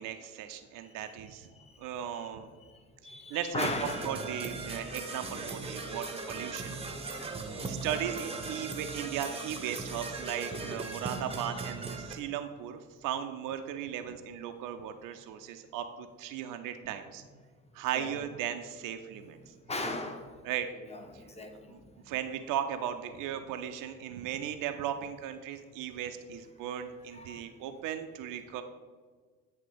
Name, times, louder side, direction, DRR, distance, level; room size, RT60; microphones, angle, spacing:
voice 1, 0.0-1.5 1.8-2.5 3.3-6.8 7.1-7.3 7.6-17.2 17.7-19.4 20.4-20.7 21.7-21.8 22.1-28.6, right 10 dB, 55° right, 7 dB, 0.6 m, -37 dB
voice 2, 3.0-4.1 6.5-6.8 17.9-18.2 19.7-20.3 20.8-21.8 27.1-27.4, left 2 dB, 15° left, 5 dB, 0.9 m, -37 dB
Percussion / Brass instrument, 3.6-12.1, right 3 dB, 15° right, 0.8 m, -38 dB
9.1 x 3.3 x 5.0 m, 1.5 s
figure-of-eight pair, 50°, 39 cm